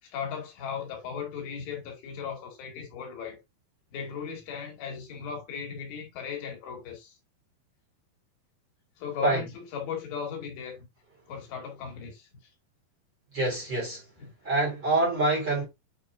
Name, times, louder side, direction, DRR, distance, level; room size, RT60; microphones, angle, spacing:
voice 1, 0.0-3.4 3.9-7.2 9.0-10.9 11.3-12.3 14.2-14.3, left 7 dB, 80° left, 4.2 m, -37 dB
voice 2, 13.3-14.0 14.4-15.6, right 2 dB, 30° right, 3.7 m, -25 dB
9.1 x 4.7 x 2.5 m
omnidirectional pair, 4.9 m